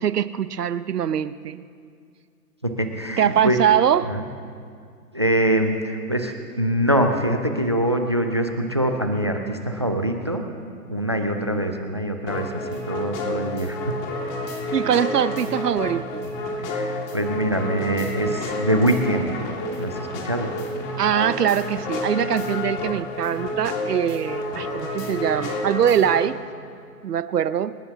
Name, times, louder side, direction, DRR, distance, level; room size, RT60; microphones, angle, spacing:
voice 1, 0.0-1.6 3.2-4.1 14.7-16.3 21.0-26.4 27.0-27.8, right 9 dB, 85° right, 15 dB, 0.8 m, -22 dB
voice 2, 2.6-3.6 4.1-4.2 5.1-10.5 10.9-14.0 16.6-19.3 19.8-19.9 20.2-20.5, right 1 dB, 20° right, 6 dB, 0.3 m, -24 dB
sound 1, 12.3-26.3, left 1 dB, 30° left, 2.2 m, -30 dB
27.5 x 12.5 x 2.8 m, 2.2 s
hypercardioid pair, 135°, 46 cm